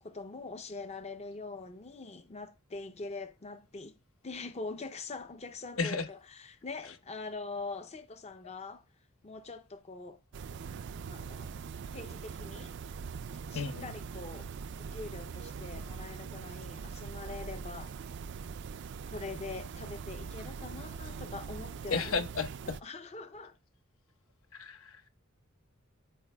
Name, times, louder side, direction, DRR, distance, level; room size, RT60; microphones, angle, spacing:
voice 1, 0.0-4.0 4.2-8.8 9.2-10.2 11.1-11.5 11.9-12.7 13.5-14.5 14.9-17.9 19.1-22.3 22.7-23.6, left 3 dB, 30° left, 0.6 m, -43 dB
sound 1, 10.3-22.8, right 5 dB, 55° right, 0.4 m, -42 dB
voice 2, 13.5-13.9 21.9-22.8 24.5-25.1, left 4 dB, 80° left, 1.0 m, -33 dB
12.5 x 4.9 x 2.3 m
head